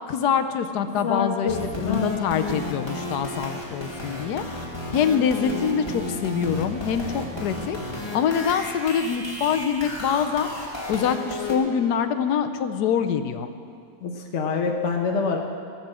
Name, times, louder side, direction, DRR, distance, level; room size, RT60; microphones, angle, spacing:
voice 1, 0.1-4.6 4.9-10.5 10.9-13.5, left 7 dB, 70° left, 9 dB, 1.2 m, -25 dB
voice 2, 0.9-2.3 14.0-15.4, left 5 dB, 50° left, 1 dB, 1.1 m, -26 dB
sound 1, 1.5-11.6, left 1 dB, 15° left, 1.9 m, -33 dB
16.5 x 6.9 x 7.6 m, 2.3 s
omnidirectional pair, 1.8 m